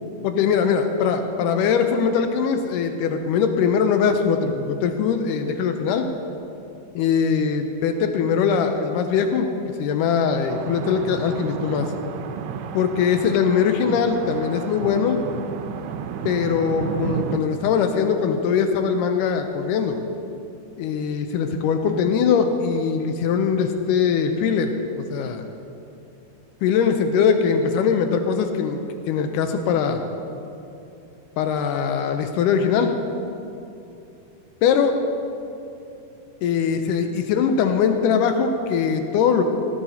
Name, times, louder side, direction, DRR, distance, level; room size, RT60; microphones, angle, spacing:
voice 1, 0.2-6.0 7.0-9.5 9.8-11.9 12.7-15.2 16.3-20.0 20.8-24.7 25.1-25.4 26.6-28.8 29.1-30.1 31.4-32.9 34.6-35.0 36.4-39.4, left 6 dB, 85° left, 6 dB, 1.8 m, -21 dB
sound 1, 10.5-17.4, right 8 dB, 85° right, 2.6 m, -32 dB
16.5 x 13.5 x 2.8 m, 2.7 s
omnidirectional pair, 4.5 m